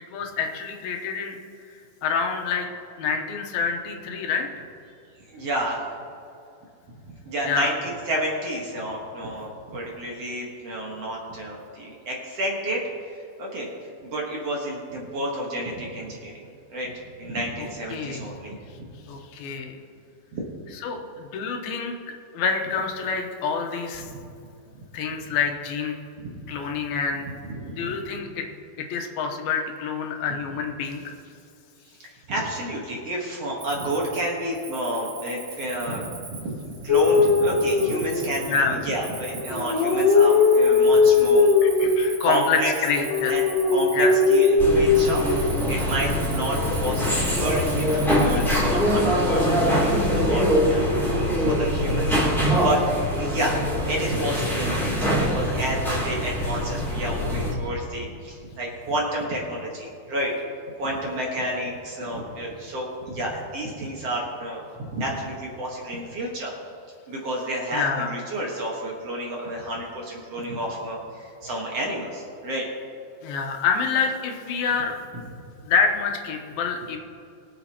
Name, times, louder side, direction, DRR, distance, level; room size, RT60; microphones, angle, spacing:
voice 1, 0.1-1.3 2.0-2.7 3.0-4.7 7.4-7.7 17.6-18.3 19.1-19.8 20.8-22.0 22.3-24.1 24.9-26.0 26.5-27.3 27.8-28.5 28.8-31.1 38.5-38.8 41.6-43.3 43.9-44.1 67.7-68.1 73.2-74.9 75.6-77.0, left 5 dB, 85° left, 2 dB, 2.9 m, -27 dB
voice 2, 5.3-5.8 7.1-13.7 14.0-18.9 20.3-20.4 24.1-24.2 26.2-26.4 27.5-28.0 32.3-41.5 42.2-60.3 60.8-66.5 67.1-72.7, right 1 dB, 55° right, -3 dB, 2.1 m, -30 dB
Cricket, 33.6-49.0, right 4 dB, 80° right, 3.5 m, -40 dB
sound 1, 36.9-38.6 39.4-42.0 42.9-45.5 46.6-47.2, left 4 dB, 65° left, 1.7 m, -19 dB
sound 2, 44.6-57.5, equal, ahead, 2.2 m, -23 dB
22.0 x 8.1 x 3.0 m, 2.6 s
omnidirectional pair, 4.2 m